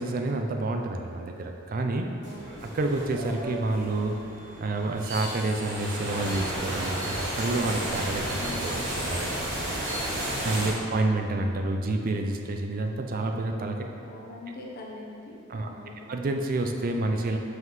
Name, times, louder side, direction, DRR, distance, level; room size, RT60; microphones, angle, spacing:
voice 1, 0.0-2.1 2.7-4.2 4.6-9.3 10.2-13.8 15.5-15.7 16.1-17.4, right 2 dB, 45° right, 4 dB, 0.4 m, -29 dB
voice 2, 2.2-2.7 8.3-8.7 14.0-16.1, left 2 dB, 50° left, -2 dB, 0.8 m, -43 dB
sound 1, 2.2-10.7, right 1 dB, 60° right, 1.3 m, -33 dB
5.6 x 5.5 x 3.1 m, 2.7 s
head